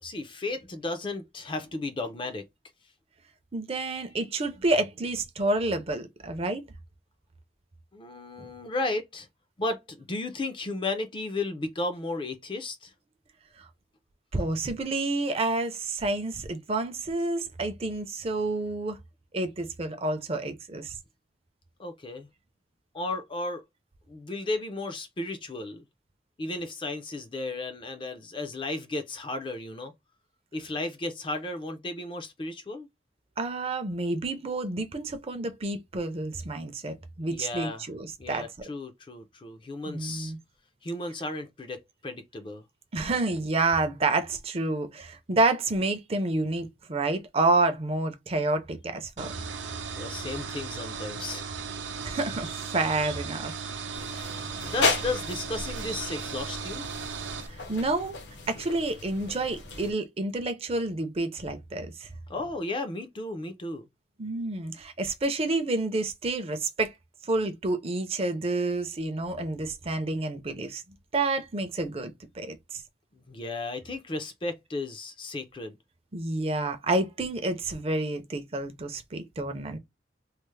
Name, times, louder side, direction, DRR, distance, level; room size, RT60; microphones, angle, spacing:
voice 1, 0.0-2.4 7.9-9.3 9.6-12.9 21.8-22.3 22.9-23.6 24.1-25.8 26.4-29.9 30.5-32.9 37.2-37.9 38.2-40.3 40.8-42.6 49.9-51.4 54.6-56.9 62.3-63.9 73.1-75.8, left 2 dB, 25° left, 0.4 m, -34 dB
voice 2, 3.5-6.6 8.4-8.5 13.6-13.7 14.3-19.0 19.3-21.0 33.4-38.5 39.9-40.4 42.9-49.3 52.0-53.5 57.5-58.2 58.5-62.1 64.2-66.9 67.2-70.8 71.1-72.8 76.1-79.8, right 2 dB, 30° right, 0.5 m, -29 dB
sound 1, 49.2-57.5, right 5 dB, 80° right, 0.6 m, -36 dB
sound 2, 53.9-59.9, left 4 dB, 70° left, 0.8 m, -34 dB
3.2 x 2.0 x 3.1 m
head